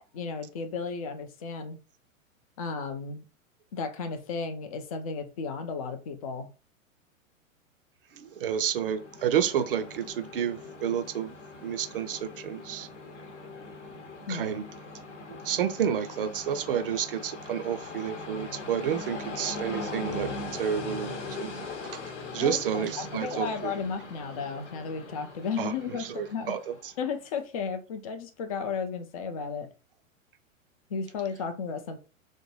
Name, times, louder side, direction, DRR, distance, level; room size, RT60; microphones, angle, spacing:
voice 1, 0.1-1.8 2.6-3.2 3.7-6.5 14.3-14.5 22.4-26.6 27.0-29.7 30.9-32.0, left 5 dB, 30° left, 0.4 m, -34 dB
voice 2, 8.1-11.3 11.6-12.9 14.3-14.6 15.3-21.5 21.9-22.0 22.3-23.7 25.6-26.7, right 8 dB, 45° right, 0.5 m, -30 dB
Train, 8.4-27.0, left 3 dB, 60° left, 0.9 m, -41 dB
4.0 x 2.1 x 3.1 m
figure-of-eight pair, 105°, 41 cm